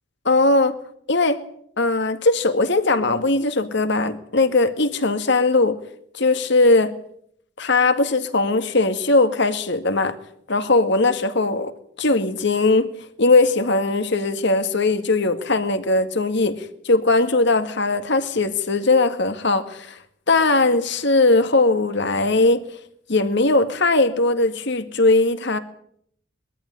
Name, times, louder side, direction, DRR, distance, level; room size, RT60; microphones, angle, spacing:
voice 1, 0.3-0.8 1.1-1.4 1.8-5.8 6.1-6.9 7.6-10.1 10.5-11.7 12.0-12.9 13.2-20.0 20.3-22.6 23.1-25.6, left 3 dB, 65° left, 2.0 m, -19 dB
22.0 x 13.5 x 10.0 m
head